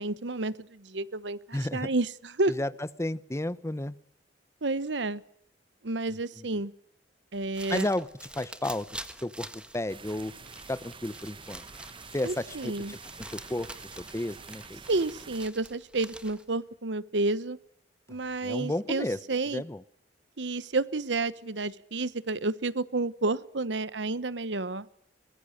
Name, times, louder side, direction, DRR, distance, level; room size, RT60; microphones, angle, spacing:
voice 1, 0.0-2.5 4.6-5.2 5.8-6.7 7.3-7.9 12.2-12.9 14.9-17.6 18.1-19.6 20.4-24.9, right 2 dB, 80° right, 18 dB, 1.0 m, -30 dB
voice 2, 1.5-1.9 2.5-3.9 6.4-6.5 7.7-8.1 8.4-8.9 9.2-9.5 9.7-10.3 10.7-11.6 12.1-13.0 13.3-13.7 14.1-14.8 18.1-18.2 18.4-19.2 19.5-19.8, left 1 dB, 15° left, 17 dB, 0.8 m, -32 dB
sound 1, 7.3-16.6, right 1 dB, 5° right, 1.5 m, -46 dB
sound 2, 9.9-15.5, right 5 dB, 30° right, 0.9 m, -48 dB
23.5 x 21.0 x 6.6 m, 0.72 s
head